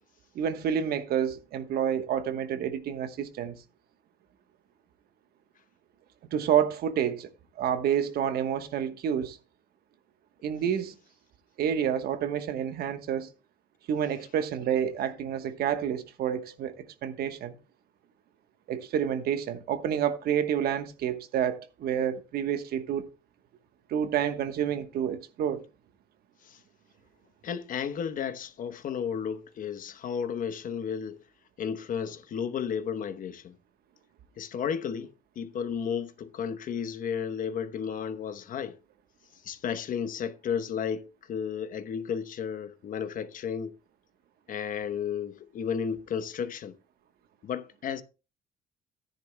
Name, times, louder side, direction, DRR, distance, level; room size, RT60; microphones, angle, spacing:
voice 1, 0.3-3.6 6.3-7.3 7.6-9.4 10.4-10.9 11.6-13.3 13.9-17.6 18.7-23.1 23.9-25.6, right 9 dB, 65° right, 1.2 m, -29 dB
voice 2, 27.4-31.2 31.6-33.6 34.4-35.1 35.4-38.8 39.4-43.8 44.5-46.7 47.4-48.0, left 7 dB, 55° left, 1.0 m, -33 dB
14.0 x 10.5 x 2.2 m
cardioid pair, 110°, 17 cm